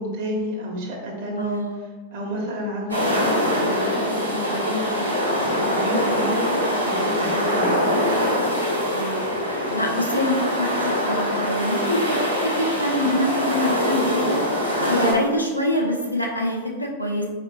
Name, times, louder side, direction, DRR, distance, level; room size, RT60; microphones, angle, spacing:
voice 1, 0.0-1.6 2.1-5.0 5.7-7.9, equal, 50° right, 0 dB, 0.9 m, -30 dB
voice 2, 1.4-1.8 8.9-14.4 14.8-17.3, equal, 85° left, -1 dB, 0.6 m, -25 dB
sound 1, 2.9-15.1, equal, 90° right, 0.9 m, -23 dB
4.3 x 2.5 x 2.9 m, 1.3 s
figure-of-eight pair, 90°, 0 cm